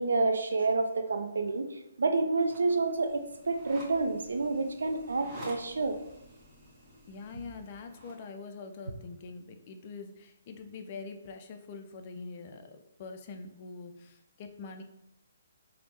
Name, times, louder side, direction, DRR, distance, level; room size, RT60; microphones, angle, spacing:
voice 1, 0.0-6.0, right 3 dB, 80° right, 8 dB, 0.4 m, -29 dB
sound 1, 2.4-8.2, equal, 15° right, 0.9 m, -50 dB
voice 2, 7.1-14.8, left 4 dB, 40° left, 6 dB, 0.3 m, -44 dB
3.1 x 2.0 x 3.0 m, 0.82 s
hypercardioid pair, 145°, 0 cm